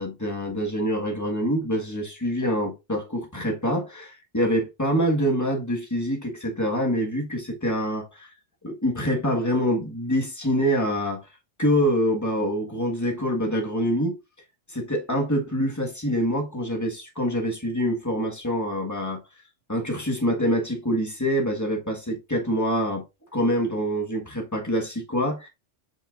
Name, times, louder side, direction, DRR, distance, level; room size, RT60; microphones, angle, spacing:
voice 1, 0.0-8.3 8.6-11.3 11.6-14.2 14.7-19.2 19.7-23.1 23.3-25.5, equal, 15° left, 1.5 m, -25 dB
7.1 x 5.5 x 2.5 m
omnidirectional pair, 1.2 m